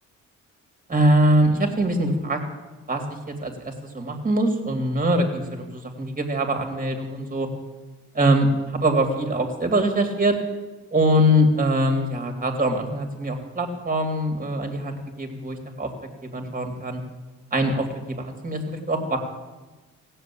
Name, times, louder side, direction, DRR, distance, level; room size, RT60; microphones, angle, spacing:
voice 1, 0.9-2.4 2.9-3.0 3.4-7.5 8.1-10.4 10.9-15.9 16.2-17.0 17.5-19.2, right 1 dB, 25° right, 4 dB, 2.9 m, -23 dB
16.5 x 7.6 x 8.6 m, 1.2 s
cardioid pair, 90°, 30 cm